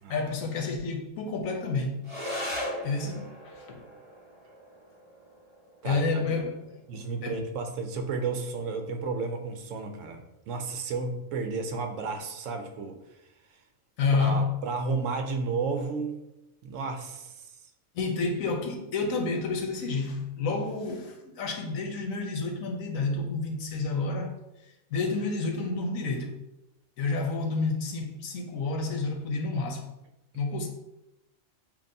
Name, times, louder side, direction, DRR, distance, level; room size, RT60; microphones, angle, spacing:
voice 1, 0.1-2.0 2.8-3.8 5.8-6.6 6.9-7.4 14.0-14.5 17.9-24.3 24.9-26.3 27.0-29.8 30.3-30.7, left 3 dB, 80° left, 1.2 m, -29 dB
sound 1, 2.0-11.0, left 1 dB, 25° right, 0.8 m, -41 dB
voice 2, 5.8-6.2 6.9-13.0 14.1-16.2 16.6-17.5, right 4 dB, 70° right, 0.9 m, -32 dB
7.2 x 2.5 x 2.7 m
omnidirectional pair, 1.4 m